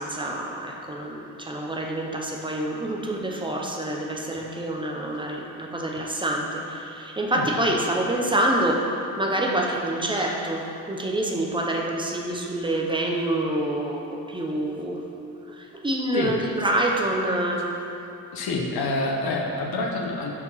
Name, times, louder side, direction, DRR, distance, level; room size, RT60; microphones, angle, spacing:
voice 1, 0.0-15.0 15.5-17.7, right 1 dB, 15° right, 0 dB, 0.6 m, -27 dB
voice 2, 7.3-7.7 16.1-16.3 18.3-20.3, left 2 dB, 85° left, 0 dB, 1.0 m, -27 dB
6.3 x 4.7 x 5.5 m, 2.7 s
wide cardioid pair, 160°, 36 cm